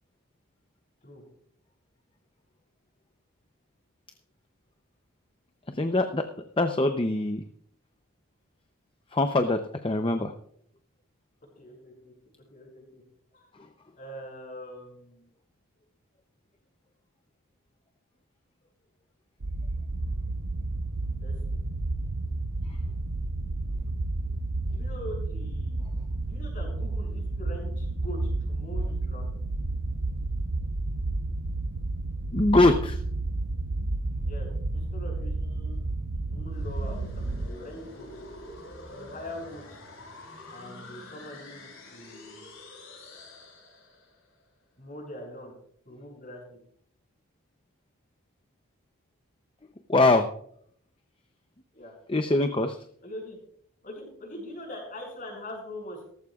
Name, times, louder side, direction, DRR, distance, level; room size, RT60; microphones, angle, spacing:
voice 1, 5.7-6.3 6.6-7.4 9.1-10.3 32.3-33.0 49.9-50.3 52.1-52.8, left 2 dB, 25° left, 7 dB, 0.6 m, -23 dB
voice 2, 11.5-12.1 12.5-13.0 13.3-13.5 14.0-15.2 21.2-21.6 24.6-25.9 26.2-28.2 28.5-29.3 34.2-35.8 36.3-38.2 38.9-39.8 40.5-42.4 44.8-45.5 45.9-46.6 51.7-51.9 53.0-53.4 53.8-56.1, left 1 dB, 40° left, 1 dB, 5.7 m, -43 dB
sound 1, 19.4-37.5, right 2 dB, 85° right, 0.8 m, -31 dB
sound 2, 36.3-44.2, left 1 dB, 75° left, 5.3 m, -45 dB
17.0 x 14.5 x 2.4 m, 0.66 s
head